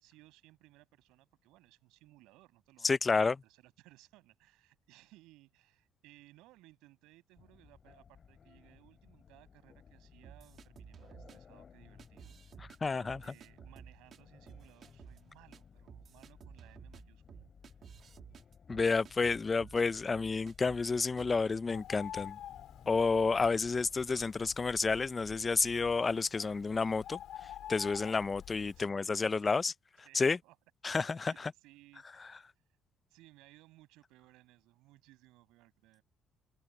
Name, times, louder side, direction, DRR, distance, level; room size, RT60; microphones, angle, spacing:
voice 1, 0.0-12.6 12.9-17.5 28.7-29.5 30.0-30.6 31.2-32.4 33.1-36.0, right 19 dB, 90° right, 5.9 m, -62 dB
voice 2, 2.8-3.4 12.6-13.2 18.7-22.4 22.9-27.2 27.7-29.7 30.1-30.4 30.8-31.5, left 4 dB, 30° left, 0.4 m, -30 dB
sound 1, 7.4-24.6, left 6 dB, 45° left, 5.4 m, -59 dB
sound 2, 10.2-11.4 12.0-12.8 13.0-14.2 14.5-15.2 15.5-15.6 15.9-19.8 20.1-20.9 21.2-21.4, right 7 dB, 55° right, 1.9 m, -53 dB
Bird, 21.7-28.8, left 11 dB, 75° left, 2.1 m, -49 dB
open air
cardioid pair, 90°, 0 cm